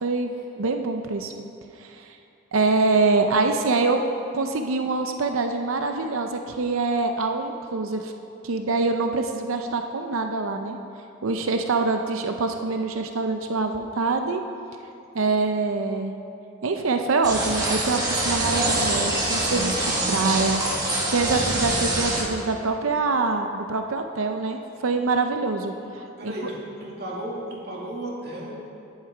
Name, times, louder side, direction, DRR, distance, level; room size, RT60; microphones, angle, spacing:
voice 1, 0.0-0.3 0.6-1.3 1.8-2.1 2.5-4.0 4.3-8.1 8.4-10.8 11.2-14.4 15.1-16.1 16.6-19.7 20.1-25.7 26.2-26.3, right 3 dB, 85° right, 5 dB, 0.6 m, -25 dB
sound 1, 17.2-22.2, right 1 dB, 20° right, 1.7 m, -25 dB
voice 2, 26.2-28.7, right 1 dB, 50° right, -3 dB, 2.2 m, -34 dB
10.5 x 10.5 x 4.9 m, 2.6 s
head